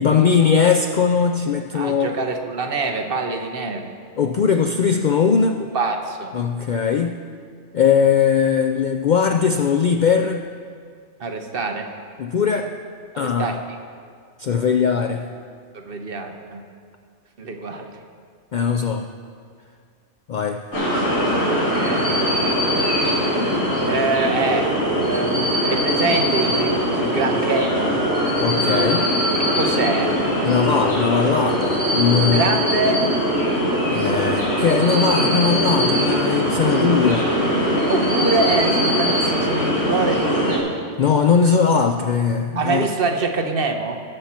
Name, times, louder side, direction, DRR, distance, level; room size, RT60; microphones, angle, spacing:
voice 1, 0.0-2.2 4.2-5.6 6.3-7.2 7.7-10.4 12.2-12.7 13.2-13.6 14.4-15.3 18.5-19.1 20.3-20.6 28.4-29.2 30.4-32.5 33.9-37.3 41.0-42.9, left 6 dB, 60° left, 5 dB, 0.5 m, -19 dB
voice 2, 1.7-3.9 5.6-6.3 11.2-11.9 13.1-13.6 14.5-14.6 15.7-16.6 17.4-17.9 21.4-22.3 23.8-24.8 25.1-28.0 29.3-30.2 32.1-33.1 36.8-37.0 37.7-40.7 42.6-44.0, right 3 dB, 55° right, 4 dB, 1.0 m, -25 dB
sound 1, 20.7-40.6, equal, 85° left, 3.4 m, -21 dB
18.5 x 7.3 x 4.3 m, 2.1 s
omnidirectional pair, 1.2 m